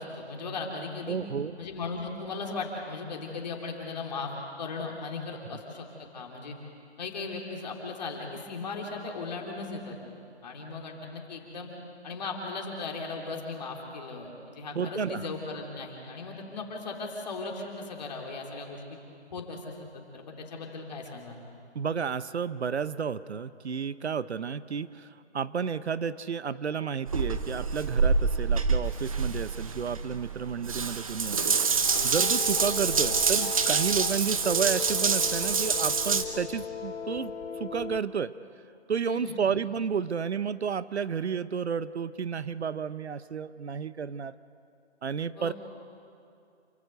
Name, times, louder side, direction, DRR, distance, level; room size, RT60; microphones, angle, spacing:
voice 1, 0.0-1.2 1.6-4.3 4.6-6.6 7.0-10.0 10.4-11.7 12.0-18.8 19.3-21.4 39.0-39.4 45.4-45.5, left 3 dB, 35° left, 0 dB, 3.4 m, -37 dB
voice 2, 1.1-1.6 5.5-5.6 14.7-15.3 21.7-38.4 38.9-44.4 45.0-45.5, right 6 dB, 70° right, 16 dB, 0.8 m, -31 dB
Water tap faucet / Bathtub (filling or washing) / Drip, 27.1-36.2, right 5 dB, 30° right, 1.0 m, -27 dB
sound 1, 31.8-38.0, left 6 dB, 85° left, 1.0 m, -38 dB
28.0 x 15.0 x 7.9 m, 2.5 s
hypercardioid pair, 170°, 34 cm